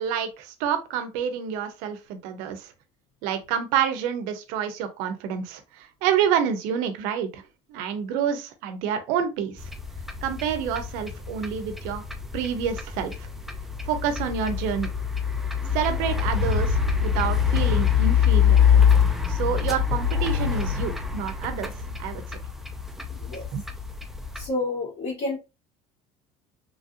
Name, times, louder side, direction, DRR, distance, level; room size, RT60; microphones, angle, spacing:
voice 1, 0.0-2.7 3.2-7.4 7.7-9.7 10.2-12.0 12.3-13.3 13.8-14.9 15.7-18.6 19.3-21.7 22.0-22.4 23.5-23.6, right 8 dB, 75° right, 9 dB, 0.6 m, -28 dB
sound 1, 9.6-24.5, left 7 dB, ahead, 0.3 m, -24 dB
voice 2, 23.1-23.5 24.3-25.4, left 2 dB, 55° left, -7 dB, 1.5 m, -30 dB
3.1 x 2.6 x 2.5 m, 0.28 s
cardioid pair, 125°, 13 cm